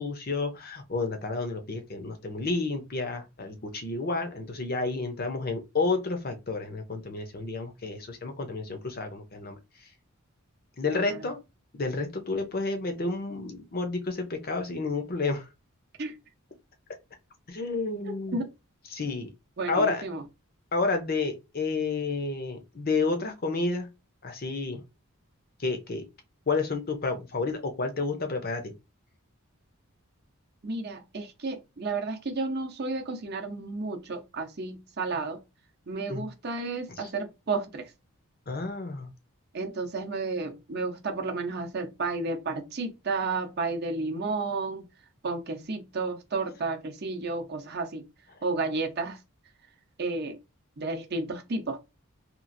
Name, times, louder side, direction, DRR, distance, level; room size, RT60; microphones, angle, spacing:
voice 1, 0.0-9.6 10.8-11.4 11.7-15.5 17.5-18.4 18.9-19.3 19.7-20.0 20.7-23.9 24.2-24.8 25.6-26.1 26.5-28.7 36.1-36.3 36.9-37.0 38.5-39.1, left 3 dB, 45° left, 0.6 m, -30 dB
voice 2, 10.9-11.2 16.0-16.2 18.0-18.5 19.6-20.2 30.6-35.4 35.9-37.9 39.5-44.8 45.2-48.0 48.4-49.2 50.0-50.4 50.8-51.8, right 3 dB, 45° right, 0.6 m, -32 dB
2.9 x 2.4 x 2.5 m
head